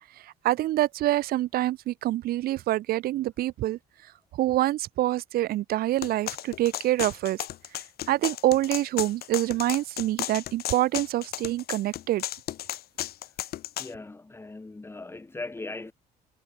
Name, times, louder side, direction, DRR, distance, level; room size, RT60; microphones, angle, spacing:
voice 1, 0.4-3.8 4.4-7.4 8.1-12.2, right 15 dB, 65° right, 0.5 m, -26 dB
sound 1, 6.0-13.9, left 13 dB, 65° left, 3.7 m, -34 dB
voice 2, 13.8-15.9, left 2 dB, 15° left, 1.9 m, -39 dB
cardioid pair, 110°, 17 cm